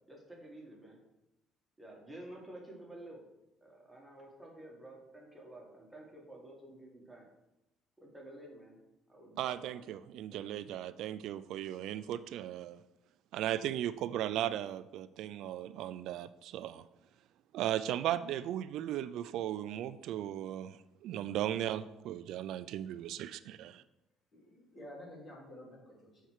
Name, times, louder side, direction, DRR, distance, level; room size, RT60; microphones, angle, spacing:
voice 1, 0.1-1.0 1.8-3.2 3.6-7.3 8.0-8.8 9.1-9.8 10.3-10.5, right 1 dB, 5° right, -2 dB, 1.9 m, -51 dB
voice 2, 9.4-12.8 13.3-16.9 17.5-23.8, right 12 dB, 70° right, 14 dB, 0.3 m, -37 dB
voice 3, 24.3-26.3, left 1 dB, 35° left, -3 dB, 3.1 m, -51 dB
6.7 x 4.5 x 6.4 m, 0.91 s
cardioid pair, 135°, 0 cm